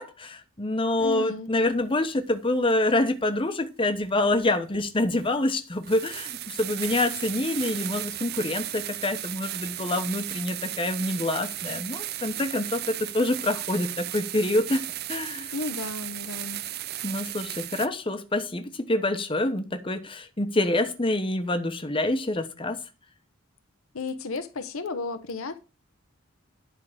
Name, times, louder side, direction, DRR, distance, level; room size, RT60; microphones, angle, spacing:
voice 1, 0.0-15.5 17.0-22.8, left 1 dB, 25° left, 0.9 m, -26 dB
voice 2, 1.0-1.5 15.5-16.6 23.9-25.6, left 3 dB, 75° left, 0.8 m, -33 dB
sound 1, 2.7-2.8 4.5-4.6 5.2-5.4 5.8-17.9, right 13 dB, 50° right, 0.5 m, -35 dB
11.0 x 3.7 x 6.4 m
head